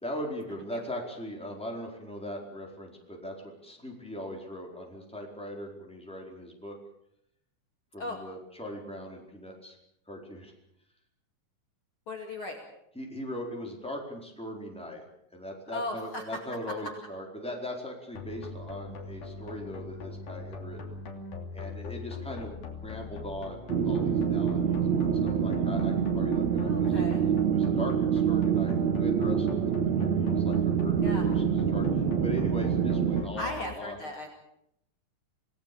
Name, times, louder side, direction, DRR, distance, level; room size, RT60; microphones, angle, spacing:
voice 1, 0.0-6.8 7.9-9.8 10.1-10.5 12.9-15.0 15.3-21.0 21.5-27.0 27.5-34.0, left 1 dB, ahead, 0 dB, 4.2 m, -40 dB
voice 2, 12.1-12.6 15.7-16.4 16.7-16.8 26.6-27.2 31.0-31.3 33.4-34.3, left 2 dB, 45° left, 2 dB, 2.9 m, -37 dB
sound 1, 18.2-33.8, left 3 dB, 80° left, 4.5 m, -42 dB
sound 2, 23.7-33.2, right 7 dB, 65° right, 2.9 m, -26 dB
27.5 x 18.0 x 7.0 m, 0.76 s
omnidirectional pair, 3.6 m